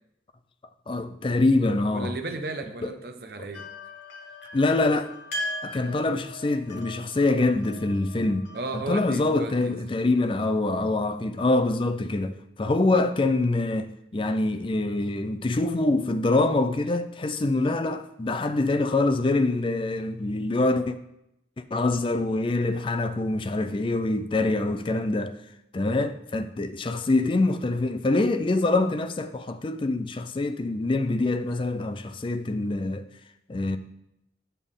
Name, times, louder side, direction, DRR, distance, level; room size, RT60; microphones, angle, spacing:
voice 1, 0.9-2.1 2.8-3.0 3.4-3.5 4.5-5.1 5.6-21.0 21.7-25.3 25.7-33.0 33.5-33.8, left 2 dB, 25° left, 0.4 m, -25 dB
voice 2, 1.9-3.6 8.5-9.8, right 2 dB, 55° right, 0.8 m, -34 dB
sound 1, 3.5-10.4, left 1 dB, 75° left, 1.9 m, -39 dB
8.3 x 6.8 x 3.7 m
head